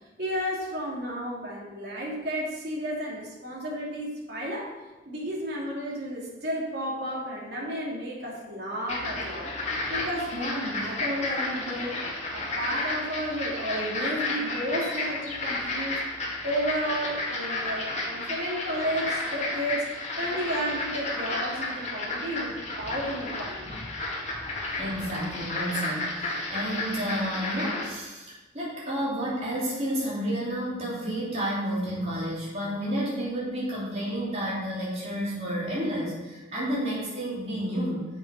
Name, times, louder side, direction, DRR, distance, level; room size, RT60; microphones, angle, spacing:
voice 1, 0.2-4.8 5.1-9.5 9.9-12.0 12.3-16.0 16.4-19.9 20.2-23.7, equal, 60° right, -4 dB, 2.5 m, -32 dB
sound 1, 8.9-27.9, left 2 dB, 35° left, 1.6 m, -32 dB
voice 2, 24.8-38.1, equal, 35° right, -6 dB, 3.4 m, -31 dB
7.6 x 7.4 x 5.4 m, 1.2 s
head